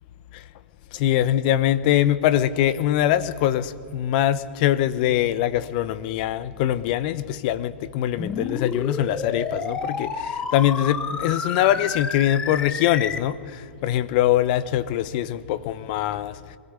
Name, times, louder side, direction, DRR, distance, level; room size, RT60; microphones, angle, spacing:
voice 1, 0.9-16.4, left 12 dB, 45° left, 0.9 m, -23 dB
sound 1, 8.2-13.2, left 5 dB, 15° left, 1.1 m, -30 dB
23.0 x 16.0 x 8.1 m
hypercardioid pair, 110°, 6 cm